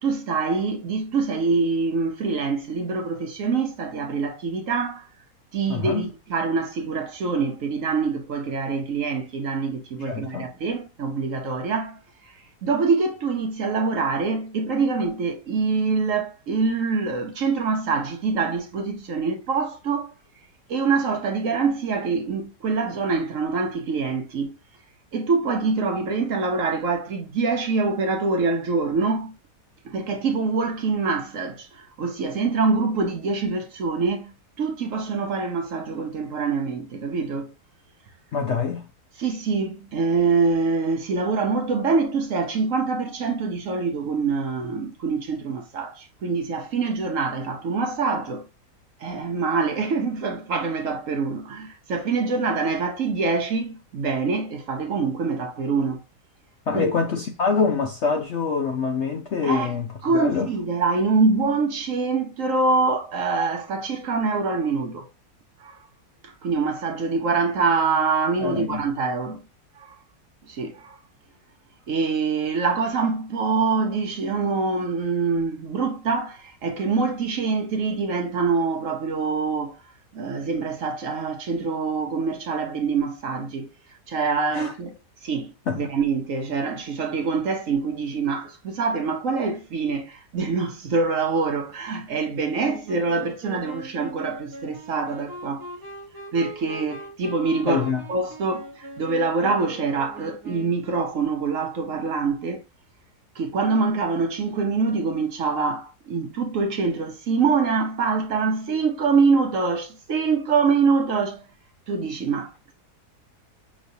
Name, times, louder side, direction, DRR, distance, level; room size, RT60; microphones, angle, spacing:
voice 1, 0.0-5.1 5.5-12.0 12.6-20.1 20.7-24.6 25.1-29.3 29.8-34.3 34.6-37.5 39.2-48.5 49.0-56.0 56.7-56.9 59.4-59.7 60.0-65.1 65.6-65.8 66.2-69.4 69.8-70.0 70.5-71.0 71.9-79.8 80.1-83.7 84.1-84.9 85.2-95.7 96.3-102.6 103.4-111.4 111.9-112.5, right 4 dB, 60° right, 1.0 m, -25 dB
voice 2, 5.7-6.1 10.1-10.5 38.3-38.8 56.7-59.9 60.1-60.5 68.4-68.8 84.5-84.7 85.7-85.9 97.7-98.0, left 5 dB, 60° left, 0.7 m, -25 dB
Wind instrument woodwind instrument, 92.5-100.9, right 1 dB, 20° right, 0.7 m, -41 dB
6.2 x 3.1 x 2.6 m
omnidirectional pair, 1.8 m